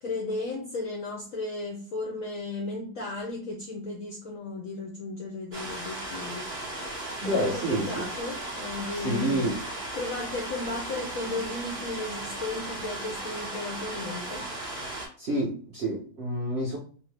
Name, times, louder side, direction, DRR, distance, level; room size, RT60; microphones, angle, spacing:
voice 1, 0.0-6.5 7.2-9.6 9.9-14.5, left 2 dB, 70° left, 0 dB, 0.8 m, -35 dB
sound 1, 5.5-15.1, right 1 dB, 30° right, 1.3 m, -36 dB
voice 2, 7.2-8.1 8.9-9.6 15.2-16.8, right 1 dB, 55° right, -4 dB, 0.7 m, -28 dB
3.5 x 2.0 x 3.2 m, 0.42 s
omnidirectional pair, 2.0 m